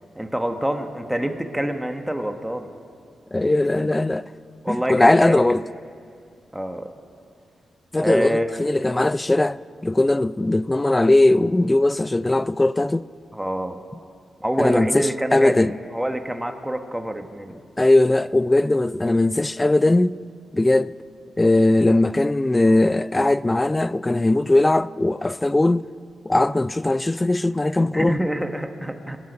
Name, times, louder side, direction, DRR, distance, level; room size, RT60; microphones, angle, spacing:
voice 1, 0.1-2.7 3.8-3.9 4.6-5.4 6.5-6.9 8.0-8.5 13.3-13.8 14.4-17.6 27.9-29.2, right 1 dB, 5° right, 1.2 m, -26 dB
voice 2, 3.3-4.2 4.7-5.6 7.9-9.6 9.8-13.1 14.6-15.7 17.8-20.2 20.5-20.9 21.4-25.9 26.2-28.2, left 2 dB, 15° left, 0.3 m, -19 dB
24.5 x 11.0 x 5.3 m
cardioid pair, 105°, 0 cm